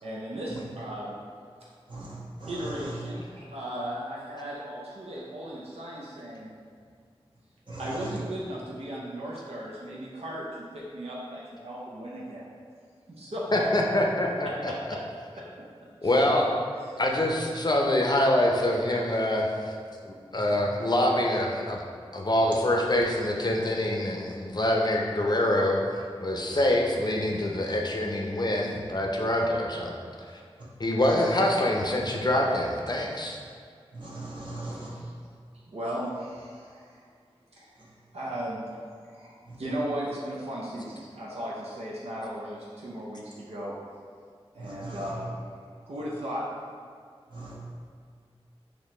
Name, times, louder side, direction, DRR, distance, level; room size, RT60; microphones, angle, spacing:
voice 1, 0.0-1.1 2.5-6.5 7.8-12.5 13.1-13.7 14.6-15.0 15.3-15.7 16.0-16.2 16.8-17.0 34.3-35.1 35.7-37.1 37.5-37.9 38.1-38.8 39.0-43.7 44.5-45.3 45.8-46.5, equal, 85° right, -6 dB, 0.6 m, -36 dB
voice 2, 1.9-2.9 7.7-8.1 17.2-17.3 20.3-20.5 30.6-30.7 31.0-31.3 33.9-34.9 37.8-37.9 39.4-39.6 44.6-45.1 47.3-47.5, right 2 dB, 50° right, -6 dB, 1.0 m, -40 dB
voice 3, 13.5-14.7 16.0-16.5 17.0-19.7 20.0-21.8 22.1-25.8 26.2-29.9 30.3-30.4 30.8-33.4, left 1 dB, 45° left, 0 dB, 0.5 m, -25 dB
4.2 x 3.0 x 3.1 m, 2.1 s
wide cardioid pair, 55°, 10 cm